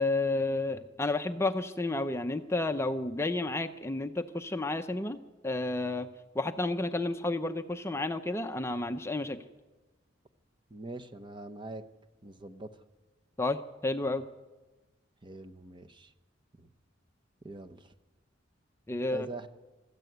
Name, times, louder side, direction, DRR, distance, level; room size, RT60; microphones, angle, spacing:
voice 1, 0.0-5.2 5.4-6.1 6.3-9.4 13.4-14.2 18.9-19.3, left 2 dB, 15° left, 8 dB, 0.6 m, -31 dB
voice 2, 10.7-11.8 12.2-12.8 15.2-16.1 16.6-16.7 17.4-17.9 19.1-19.5, right 2 dB, 25° right, 7 dB, 0.9 m, -43 dB
24.5 x 14.0 x 8.0 m, 1.2 s
head